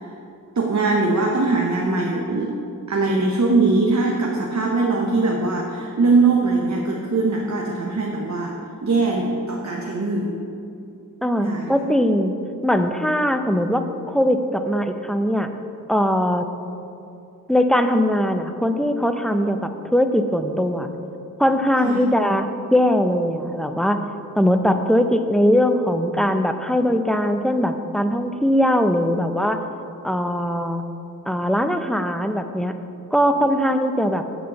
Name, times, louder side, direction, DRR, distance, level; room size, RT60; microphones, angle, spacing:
voice 1, 0.5-2.6 2.9-8.5 8.8-10.4 11.4-11.7 21.8-22.0, right 3 dB, 55° right, -1 dB, 0.9 m, -21 dB
voice 2, 11.2-12.3 12.6-15.5 15.9-16.5 17.5-20.9 21.4-24.0 24.4-29.6 30.0-30.8 31.3-32.7 33.1-34.2, equal, ahead, 7 dB, 0.6 m, -20 dB
9.4 x 4.4 x 6.8 m, 2.6 s
cardioid pair, 60°, 34 cm